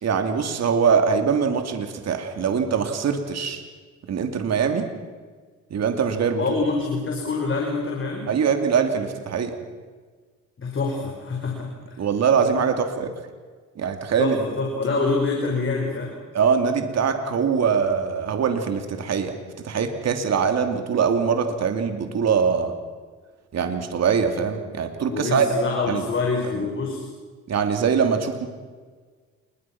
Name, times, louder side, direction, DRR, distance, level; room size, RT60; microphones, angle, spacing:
voice 1, 0.0-3.6 4.1-4.9 5.7-6.4 8.3-9.5 12.0-13.1 13.8-14.4 16.3-19.3 19.6-22.7 23.5-25.5 25.9-26.0 27.5-28.5, right 6 dB, 60° right, 6 dB, 2.8 m, -22 dB
voice 2, 6.4-8.3 10.6-12.0 14.2-16.2 25.1-27.1, left 3 dB, 40° left, 0 dB, 5.0 m, -26 dB
28.0 x 22.0 x 6.1 m, 1.5 s
cardioid pair, 90°, 30 cm